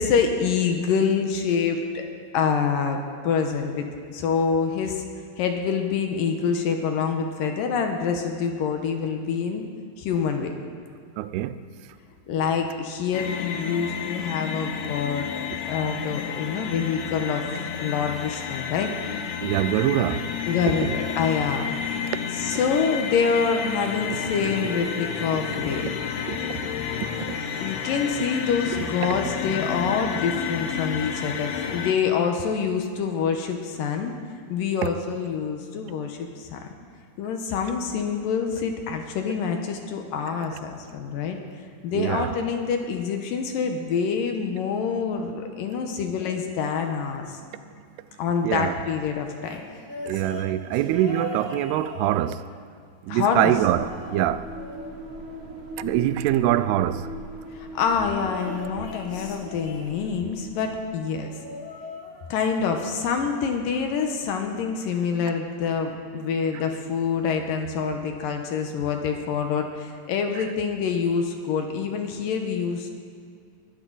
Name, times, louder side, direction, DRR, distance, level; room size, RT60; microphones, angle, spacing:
voice 1, 0.0-2.0 2.3-5.0 5.4-9.6 10.0-10.5 12.3-15.3 15.7-17.5 17.8-18.9 20.5-21.7 22.3-25.9 27.1-34.1 34.5-36.6 37.2-41.4 41.8-47.4 48.2-49.7 51.0-51.1 53.1-53.5 57.5-61.3 62.3-72.9, left 6 dB, 70° left, 2.4 m, -26 dB
voice 2, 11.2-11.6 19.4-20.4 20.7-21.0 26.3-26.6 27.0-27.1 34.8-34.9 41.9-42.3 48.4-48.7 50.0-52.4 53.0-54.5 55.8-57.1 70.4-70.5, right 13 dB, 85° right, 2.6 m, -24 dB
sound 1, 13.1-31.9, left 7 dB, 90° left, 3.0 m, -31 dB
sound 2, 49.4-52.7 53.2-54.2 54.5-56.1 58.1-60.3 61.2-62.7 63.0-63.4 64.5-64.6, left 3 dB, 55° left, 1.3 m, -41 dB
sound 3, 53.2-61.0, right 1 dB, 65° right, 1.3 m, -40 dB
21.5 x 14.0 x 4.0 m
omnidirectional pair, 4.6 m